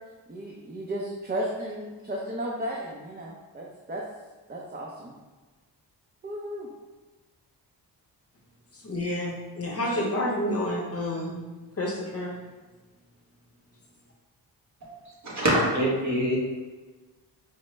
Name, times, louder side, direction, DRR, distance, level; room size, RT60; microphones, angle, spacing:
voice 1, 0.3-4.0 4.5-5.1 6.2-6.7, right 1 dB, 20° right, -2 dB, 0.5 m, -34 dB
voice 2, 8.7-11.4 11.8-12.4, left 1 dB, 35° left, -1 dB, 0.7 m, -29 dB
voice 3, 14.8-16.4, equal, 40° right, -4 dB, 1.3 m, -25 dB
4.9 x 2.1 x 3.2 m, 1.3 s
cardioid pair, 75°, 44 cm